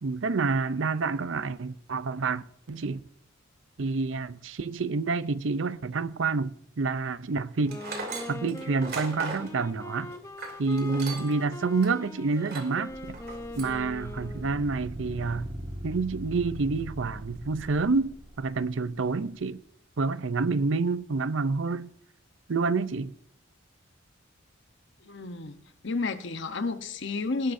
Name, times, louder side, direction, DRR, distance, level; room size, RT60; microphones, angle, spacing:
voice 1, 0.0-3.0 3.8-7.8 8.3-10.1 10.6-13.2 13.6-15.5 15.8-19.6 20.0-21.9 22.5-23.1, right 4 dB, 65° right, 0.6 m, -28 dB
Wind instrument woodwind instrument, 7.6-14.7, left 2 dB, 15° left, 0.8 m, -42 dB
Tools, 7.7-11.4 11.8-11.9 12.4-12.8 13.1-13.8, right 3 dB, 50° right, 2.8 m, -38 dB
sound 1, 12.9-19.1, right 1 dB, 30° right, 1.8 m, -41 dB
voice 2, 25.0-25.6 25.8-27.5, left 3 dB, 60° left, 1.0 m, -31 dB
19.0 x 11.5 x 2.7 m
head